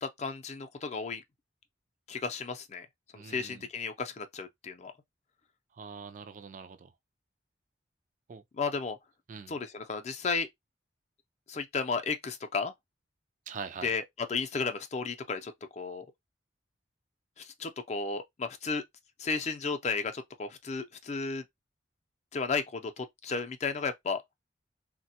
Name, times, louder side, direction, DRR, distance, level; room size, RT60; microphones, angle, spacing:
voice 1, 0.0-1.2 2.1-2.9 3.1-4.9 8.6-9.0 9.5-10.5 11.5-12.7 13.8-14.0 14.3-16.1 17.4-18.8 19.2-21.4 22.3-24.2, left 4 dB, 35° left, 0.4 m, -33 dB
voice 2, 3.1-3.7 5.7-6.9 8.3-8.4 9.3-9.6 13.5-13.9, right 5 dB, 40° right, 0.3 m, -43 dB
3.3 x 2.1 x 2.7 m
head